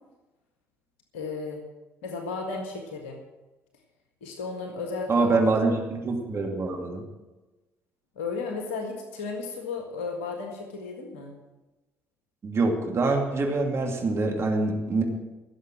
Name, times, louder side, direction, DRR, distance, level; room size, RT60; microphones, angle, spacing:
voice 1, 1.1-1.6 2.0-3.2 4.2-5.3 8.1-11.3, left 4 dB, 80° left, 2 dB, 1.6 m, -34 dB
voice 2, 5.1-7.0 12.4-15.0, right 3 dB, 40° right, 1 dB, 2.7 m, -25 dB
16.0 x 7.3 x 7.6 m, 1.1 s
hypercardioid pair, 55°, 7 cm